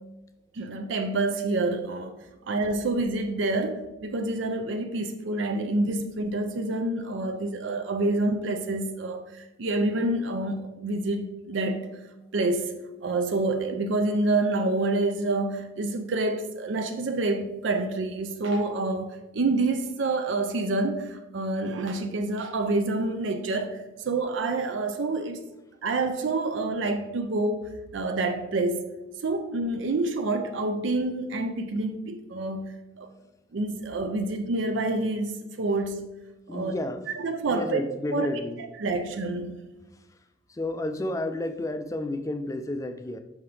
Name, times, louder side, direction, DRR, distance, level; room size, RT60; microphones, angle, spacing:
voice 1, 0.5-11.9 12.3-25.4 25.8-28.9 29.2-33.1 33.5-36.1 36.5-36.7 37.2-37.8 38.1-38.3 38.8-39.6, right 2 dB, 75° right, 0.5 m, -28 dB
voice 2, 36.5-37.1 37.5-38.6 39.9-40.2 40.5-43.2, left 1 dB, 15° left, 0.3 m, -31 dB
5.7 x 5.5 x 3.3 m
head